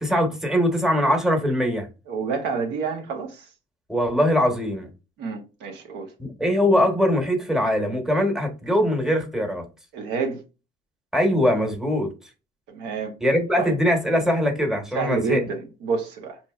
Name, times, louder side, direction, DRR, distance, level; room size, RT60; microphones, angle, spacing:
voice 1, 0.0-1.9 3.9-4.9 6.2-9.6 11.1-12.1 13.2-15.4, equal, 5° right, 1.1 m, -22 dB
voice 2, 2.1-3.5 5.2-6.1 9.9-10.4 12.7-13.1 13.6-13.7 14.9-16.4, right 5 dB, 85° right, 0.9 m, -28 dB
4.2 x 2.9 x 2.4 m
cardioid pair, 110°, 17 cm